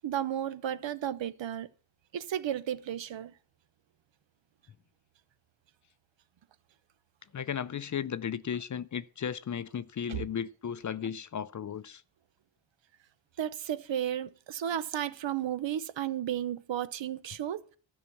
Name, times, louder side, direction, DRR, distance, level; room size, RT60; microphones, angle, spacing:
voice 1, 0.0-1.7 2.1-3.3 10.1-10.2 13.4-17.6, right 10 dB, 70° right, 0.9 m, -33 dB
voice 2, 7.3-12.0, left 8 dB, 40° left, 0.5 m, -35 dB
12.5 x 5.7 x 8.5 m
wide cardioid pair, 110°, 46 cm